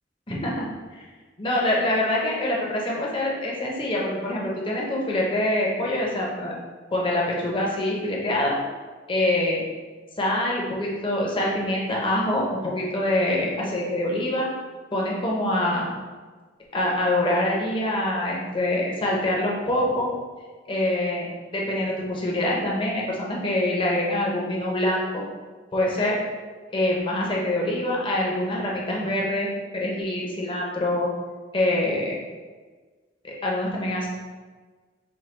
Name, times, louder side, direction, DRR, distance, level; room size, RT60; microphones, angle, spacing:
voice 1, 0.3-0.7 1.4-6.6 6.9-8.6 9.1-9.7 10.2-14.5 14.9-15.9 16.7-20.1 20.7-21.3 21.5-25.2 25.7-26.2 26.7-29.5 29.7-31.1 31.5-32.2 33.2-34.1, left 1 dB, 30° left, -3 dB, 0.7 m, -25 dB
4.4 x 2.2 x 3.2 m, 1.4 s
head